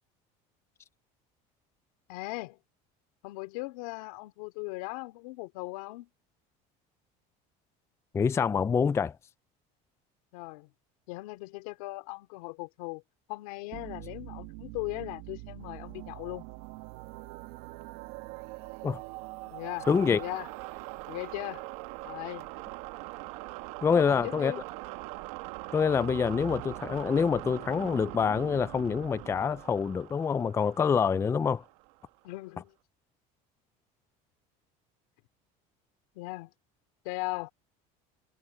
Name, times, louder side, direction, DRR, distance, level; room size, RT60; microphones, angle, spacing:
voice 1, 2.1-2.6 3.2-6.1 10.3-10.7 11.1-13.0 13.3-16.4 19.5-20.5 21.1-21.6 22.0-22.5 23.8-24.6 32.2-32.7 36.1-36.5 37.0-37.5, left 24 dB, 85° left, 2.7 m, -38 dB
voice 2, 8.1-9.1 18.8-19.0 19.9-20.2 23.8-24.5 25.7-31.6, left 6 dB, 15° left, 0.4 m, -26 dB
sound 1, 13.7-32.2, right 21 dB, 85° right, 1.8 m, -42 dB
cardioid pair, 135°, 18 cm